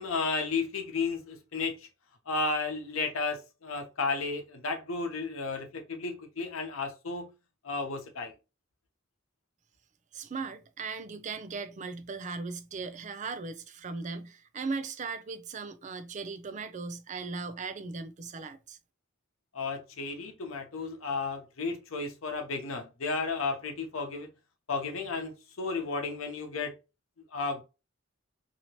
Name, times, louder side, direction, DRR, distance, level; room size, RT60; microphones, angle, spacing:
voice 1, 0.0-1.9 2.3-7.3 7.6-8.3 19.5-24.3 24.7-26.7 27.3-27.6, left 4 dB, 85° left, 0.8 m, -33 dB
voice 2, 10.1-18.8, right 4 dB, 35° right, 0.4 m, -38 dB
2.9 x 2.8 x 2.9 m
head